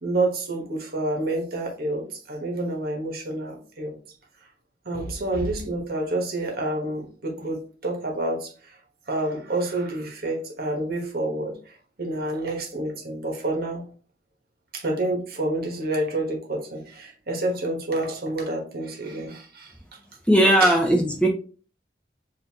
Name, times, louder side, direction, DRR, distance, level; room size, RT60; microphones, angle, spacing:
voice 1, 0.0-4.0 4.8-8.8 9.1-13.9 14.7-19.7 20.6-20.7, right 2 dB, 55° right, 1 dB, 1.2 m, -28 dB
voice 2, 20.3-21.3, right 1 dB, 5° left, 0 dB, 0.7 m, -18 dB
6.6 x 2.6 x 2.8 m, 0.39 s
head